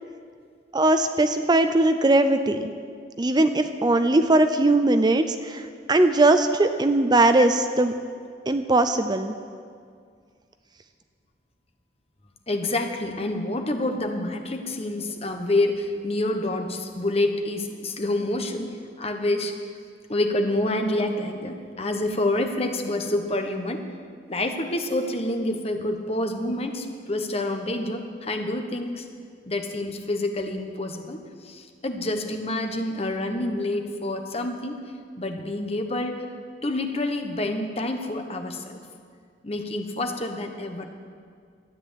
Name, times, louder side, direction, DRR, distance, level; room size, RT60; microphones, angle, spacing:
voice 1, 0.7-2.7 3.2-7.9 8.5-9.3, right 2 dB, 25° right, 9 dB, 0.5 m, -20 dB
voice 2, 12.5-19.6 20.1-23.8 24.3-29.1 29.4-34.8 35.2-36.1 36.6-38.8 39.4-40.9, left 1 dB, 35° left, 5 dB, 1.2 m, -27 dB
13.0 x 9.7 x 8.3 m, 2.1 s
head